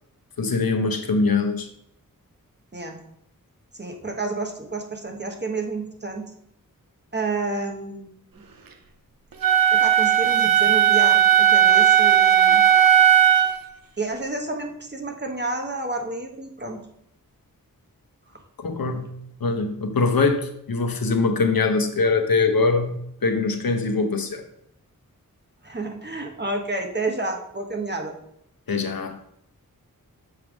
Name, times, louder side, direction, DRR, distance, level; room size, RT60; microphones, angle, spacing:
voice 1, 0.4-1.7 18.6-19.1 19.4-20.4 20.7-23.0 23.2-24.4 28.7-29.1, left 4 dB, 85° left, 6 dB, 1.0 m, -22 dB
voice 2, 3.7-6.3 7.1-8.1 9.7-12.6 14.0-16.8 25.6-28.1, right 3 dB, 30° right, 2 dB, 1.3 m, -30 dB
Wind instrument woodwind instrument, 9.4-13.6, right 10 dB, 80° right, 0.8 m, -16 dB
7.3 x 3.5 x 6.1 m, 0.74 s
wide cardioid pair, 70°, 34 cm